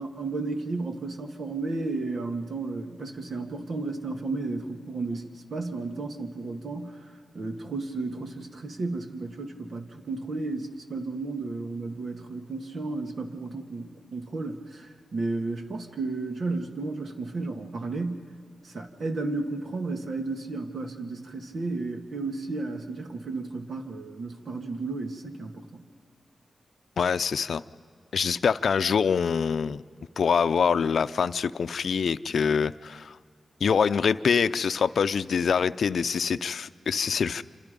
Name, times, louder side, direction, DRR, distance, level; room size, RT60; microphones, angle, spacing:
voice 1, 0.0-7.0 7.3-18.3 18.6-25.8, right 3 dB, 65° right, 5 dB, 2.0 m, -33 dB
voice 2, 27.0-27.6 28.1-29.8 30.2-33.2 33.6-37.4, left 6 dB, 75° left, 13 dB, 0.5 m, -25 dB
27.5 x 26.5 x 5.3 m, 2.1 s
cardioid pair, 65°, 0 cm